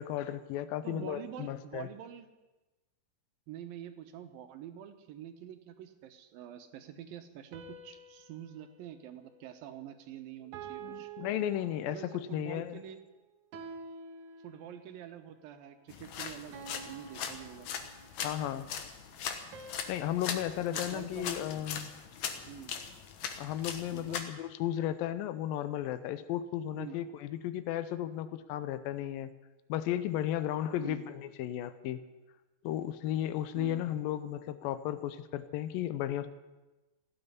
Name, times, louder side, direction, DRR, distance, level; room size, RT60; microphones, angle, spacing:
voice 1, 0.0-1.9 10.8-12.8 18.2-18.7 19.9-21.9 23.4-29.3 29.7-32.0 32.6-36.3, left 12 dB, 80° left, 12 dB, 2.5 m, -34 dB
voice 2, 0.8-2.3 3.5-11.1 11.9-13.0 14.4-17.7 20.7-21.4 22.5-22.7 23.9-24.2 26.7-27.0 30.8-31.0 33.5-33.9, right 10 dB, 80° right, 8 dB, 2.8 m, -46 dB
sound 1, 7.5-10.0 10.5-12.3 13.5-15.1 16.5-18.4 19.5-21.9, right 5 dB, 65° right, 2.4 m, -49 dB
sound 2, 15.9-24.2, left 7 dB, 65° left, 2.2 m, -40 dB
16.5 x 9.0 x 9.7 m, 1.1 s
omnidirectional pair, 4.1 m